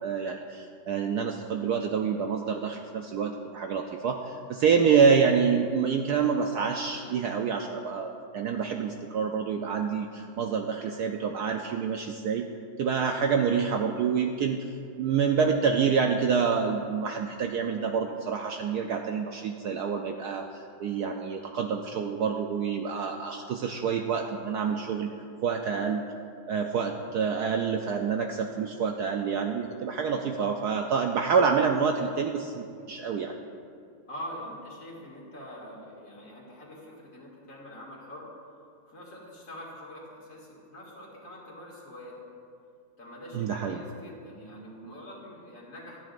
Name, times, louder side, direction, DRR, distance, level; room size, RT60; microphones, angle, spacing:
voice 1, 0.0-12.5 12.8-14.7 15.0-25.1 25.4-26.0 26.5-33.3 43.3-43.8, right 6 dB, 70° right, 3 dB, 1.0 m, -27 dB
voice 2, 34.1-38.3 38.8-42.2 43.0-46.0, equal, 40° left, -4 dB, 2.7 m, -44 dB
26.0 x 9.2 x 2.6 m, 2.4 s
omnidirectional pair, 2.1 m